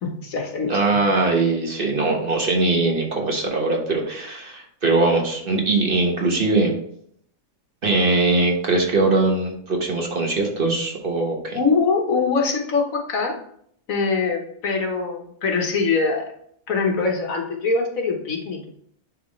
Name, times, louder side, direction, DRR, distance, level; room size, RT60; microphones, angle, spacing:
voice 1, 0.0-0.7 11.5-13.4 13.9-16.2 16.7-18.8, left 4 dB, 80° left, 2 dB, 1.6 m, -23 dB
voice 2, 0.7-6.7 7.8-11.6, right 3 dB, 45° right, 0 dB, 1.4 m, -21 dB
10.0 x 3.7 x 3.2 m, 0.67 s
omnidirectional pair, 1.4 m